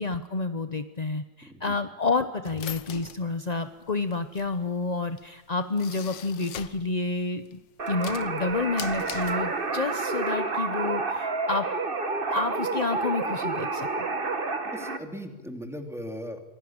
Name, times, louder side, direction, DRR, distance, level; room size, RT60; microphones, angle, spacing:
voice 1, 0.0-7.6 7.9-11.7 12.3-14.1, left 3 dB, 40° left, 10 dB, 0.6 m, -29 dB
voice 2, 1.4-1.8 14.6-16.4, equal, ahead, 5 dB, 2.8 m, -38 dB
sound 1, 2.5-6.9 7.3-9.9, left 10 dB, 85° left, 1.8 m, -41 dB
sound 2, 7.8-15.0, right 3 dB, 30° right, 1.7 m, -29 dB
25.0 x 17.5 x 8.8 m, 1.2 s
omnidirectional pair, 2.0 m